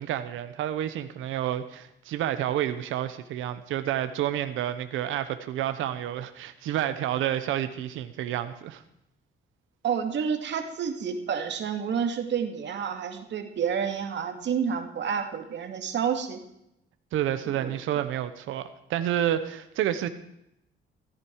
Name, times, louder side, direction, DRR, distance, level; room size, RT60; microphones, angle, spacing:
voice 1, 0.0-8.8 17.1-20.1, right 11 dB, 85° right, 11 dB, 1.0 m, -29 dB
voice 2, 9.8-16.4 17.5-17.7, right 7 dB, 65° right, 6 dB, 2.3 m, -29 dB
15.5 x 14.5 x 4.7 m, 0.81 s
cardioid pair, 90°, 20 cm